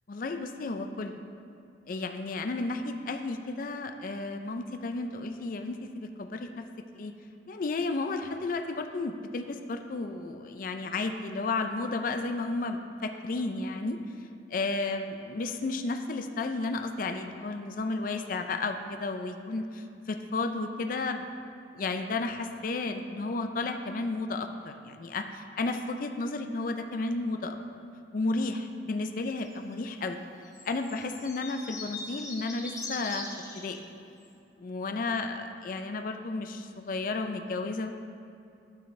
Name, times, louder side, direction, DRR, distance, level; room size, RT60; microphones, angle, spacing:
voice 1, 0.1-1.1 1.9-6.5 6.9-7.1 7.5-14.0 14.5-21.3 21.7-27.6 28.1-30.2 30.6-33.3 33.5-33.9 34.6-38.0, left 3 dB, 45° left, 6 dB, 0.4 m, -33 dB
sound 1, 29.3-29.7 30.4-33.8 34.2-34.3, left 3 dB, 20° left, 0.7 m, -41 dB
12.0 x 5.8 x 3.2 m, 2.7 s
head